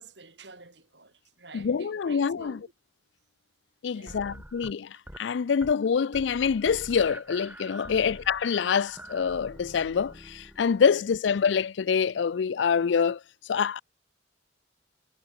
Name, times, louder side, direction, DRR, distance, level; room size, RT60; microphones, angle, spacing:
voice 1, 0.0-2.7 3.9-4.4 7.9-8.1 10.8-10.9, right 3 dB, 65° right, 7.7 m, -49 dB
voice 2, 1.5-2.6 3.8-13.2 13.5-13.8, left 6 dB, 70° left, 0.4 m, -26 dB
sound 1, 4.1-5.3 5.6-5.9 6.1-10.9, right 1 dB, 10° right, 6.8 m, -45 dB
head